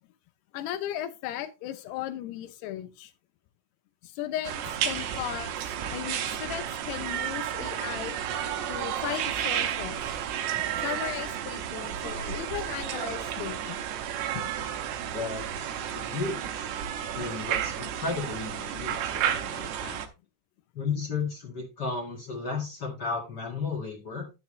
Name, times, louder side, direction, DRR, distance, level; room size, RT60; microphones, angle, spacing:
voice 1, 0.5-3.1 4.0-8.2 8.7-10.0 10.8-13.8 14.3-14.4, left 12 dB, 90° left, 2.9 m, -36 dB
sound 1, 4.4-20.1, right 10 dB, 90° right, 3.1 m, -32 dB
voice 2, 15.1-16.7 17.1-20.0 20.7-24.2, left 4 dB, 40° left, 1.5 m, -34 dB
10.5 x 7.0 x 3.2 m
omnidirectional pair, 4.6 m